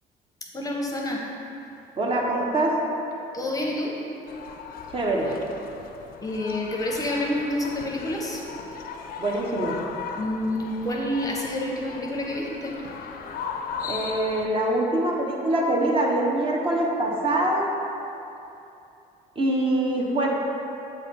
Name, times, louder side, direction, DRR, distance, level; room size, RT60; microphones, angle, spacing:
voice 1, 0.4-1.3 3.3-4.0 6.2-8.4 10.2-12.8, left 1 dB, 20° left, -1 dB, 0.7 m, -28 dB
voice 2, 2.0-2.8 4.9-5.3 9.2-9.8 13.9-17.7 19.4-20.4, right 1 dB, 30° right, -1 dB, 0.9 m, -24 dB
sound 1, 4.3-14.5, left 5 dB, 60° left, 0.4 m, -37 dB
7.5 x 3.3 x 4.2 m, 2.8 s
cardioid pair, 110°, 17 cm